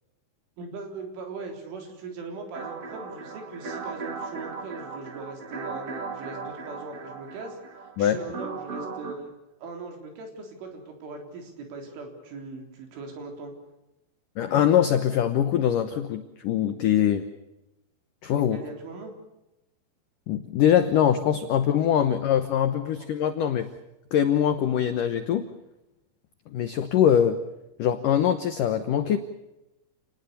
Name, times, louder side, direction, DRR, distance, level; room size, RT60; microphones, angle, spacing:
voice 1, 0.6-9.3 9.6-13.5 18.5-19.1 22.9-23.1, right 3 dB, 85° right, 4 dB, 6.3 m, -40 dB
sound 1, 2.5-9.1, right 4 dB, 40° right, 2.9 m, -37 dB
voice 2, 14.4-17.2 18.2-18.6 20.3-23.7 24.1-25.5 26.5-27.4 27.8-29.2, left 9 dB, 85° left, 9 dB, 1.8 m, -23 dB
29.0 x 19.5 x 6.8 m, 0.95 s
omnidirectional pair, 5.4 m